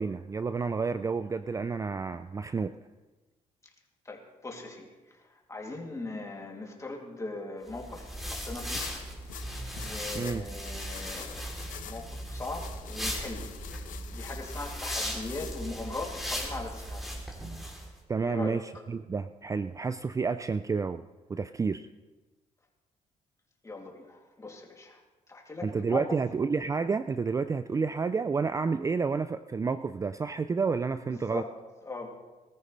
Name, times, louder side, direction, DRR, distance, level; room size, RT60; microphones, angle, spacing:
voice 1, 0.0-2.7 10.1-10.4 18.1-21.0 21.3-21.9 25.6-31.4, right 5 dB, 25° right, 12 dB, 0.4 m, -30 dB
voice 2, 4.0-4.9 5.5-8.8 9.8-11.5 11.8-13.5 14.1-17.1 18.2-18.6 23.6-25.0 25.3-26.1 31.1-31.5 31.8-32.1, left 3 dB, 25° left, 0 dB, 2.7 m, -39 dB
sound 1, 7.7-17.9, equal, ahead, 3.3 m, -37 dB
sound 2, 8.7-16.0, left 10 dB, 85° left, 0.9 m, -46 dB
20.0 x 13.5 x 3.3 m, 1.2 s
cardioid pair, 90°, 13 cm